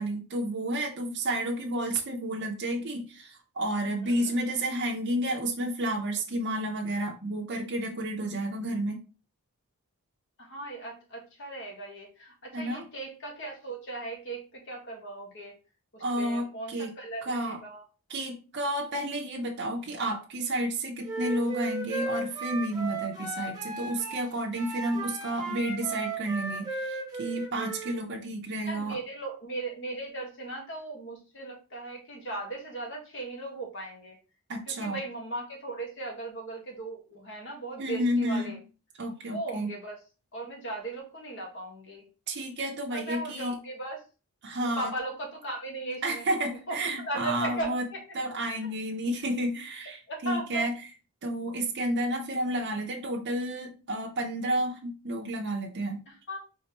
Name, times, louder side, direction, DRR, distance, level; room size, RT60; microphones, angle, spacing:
voice 1, 0.0-9.1 12.5-12.8 16.0-16.9 17.2-17.6 18.1-29.0 34.5-35.0 37.8-38.6 39.0-39.7 42.3-43.6 44.4-44.9 46.0-47.9 48.1-50.7 51.2-56.0, right 1 dB, 50° right, -1 dB, 0.7 m, -31 dB
voice 2, 4.0-4.4 10.4-15.5 15.9-17.8 28.6-34.2 34.7-38.6 39.3-40.0 40.3-42.0 42.9-44.0 44.8-46.3 46.7-48.0 48.5-48.7 50.1-50.7 56.1-56.4, right 2 dB, 55° left, 0 dB, 1.5 m, -37 dB
Wind instrument woodwind instrument, 21.0-24.2 24.5-28.0, right 3 dB, 15° right, 0.9 m, -35 dB
4.5 x 3.5 x 2.9 m, 0.33 s
head